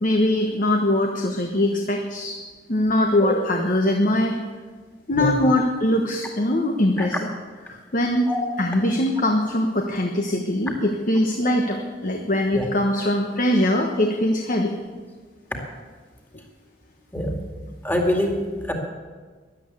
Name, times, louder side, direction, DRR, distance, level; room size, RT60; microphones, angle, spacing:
voice 1, 0.0-2.4 2.7-4.4 5.1-7.3 7.7-8.3 8.6-11.8 12.0-14.7, left 1 dB, 45° left, 2 dB, 1.2 m, -22 dB
voice 2, 5.1-5.5 7.0-7.1 8.3-8.4 12.5-12.6 17.1-17.3 17.8-18.4 18.7-18.8, left 1 dB, 10° left, 1 dB, 2.3 m, -24 dB
13.0 x 11.0 x 8.3 m, 1.4 s
head